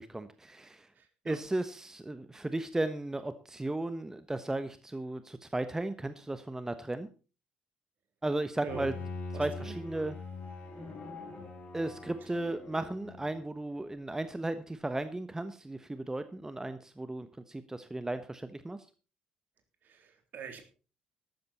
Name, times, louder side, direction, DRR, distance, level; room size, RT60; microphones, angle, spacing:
voice 1, 0.0-0.9 1.2-7.1 8.2-8.9 9.4-10.2 11.7-18.8, right 2 dB, 15° right, 11 dB, 1.1 m, -35 dB
voice 2, 1.0-1.4 8.6-8.9 9.3-9.7 19.8-20.6, right 7 dB, 50° right, 6 dB, 3.5 m, -44 dB
Bowed string instrument, 8.7-13.4, left 3 dB, 40° left, 6.7 m, -43 dB
13.5 x 12.5 x 4.3 m, 0.36 s
figure-of-eight pair, 50°, 4 cm